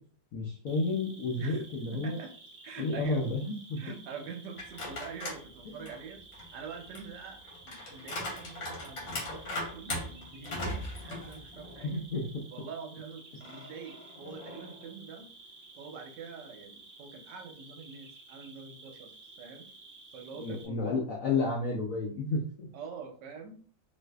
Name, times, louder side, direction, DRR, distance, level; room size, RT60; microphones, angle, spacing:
voice 1, 0.3-2.2 2.8-3.8 5.7-5.8 11.8-12.5 20.4-22.7, left 3 dB, 70° left, -2 dB, 0.8 m, -31 dB
Cricket, 0.7-20.7, right 3 dB, 55° right, 0.6 m, -53 dB
voice 2, 1.9-2.3 2.6-3.2 3.8-6.2 6.5-10.7 11.0-11.9 12.5-15.3 15.8-19.7 20.1-21.0 22.7-23.6, right 5 dB, 75° right, 5 dB, 1.2 m, -45 dB
sound 1, 4.6-5.5 5.9-12.0 12.3-12.4 13.4-14.9, left 1 dB, 85° left, 2.0 m, -39 dB
4.1 x 2.6 x 2.2 m, 0.43 s
omnidirectional pair, 2.1 m